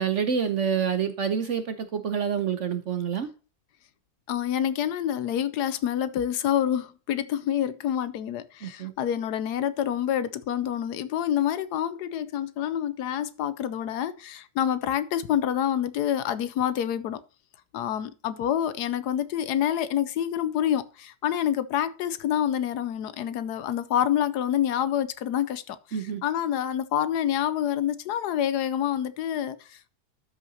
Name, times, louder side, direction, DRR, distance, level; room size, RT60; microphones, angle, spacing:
voice 1, 0.0-3.3 8.6-8.9 25.9-26.2, right 7 dB, 55° right, 0.9 m, -27 dB
voice 2, 4.3-17.2 17.7-29.9, left 10 dB, 75° left, 1.1 m, -27 dB
12.5 x 5.6 x 2.7 m
omnidirectional pair, 1.8 m